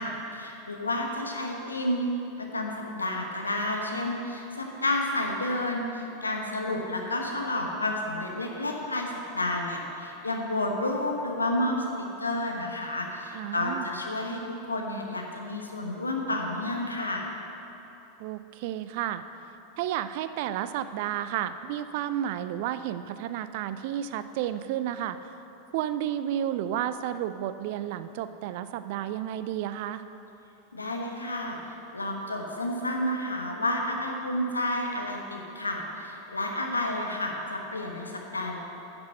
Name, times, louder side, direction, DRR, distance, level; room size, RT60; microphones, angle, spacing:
voice 1, 0.0-2.1 2.5-11.9 12.2-17.4 30.7-38.6, left 1 dB, 85° left, 2 dB, 1.1 m, -30 dB
voice 2, 13.3-13.9 18.2-19.2 19.8-25.3 25.7-30.0, right 11 dB, 55° right, 12 dB, 0.4 m, -32 dB
10.0 x 6.1 x 6.4 m, 3.0 s
figure-of-eight pair, 85°, 0 cm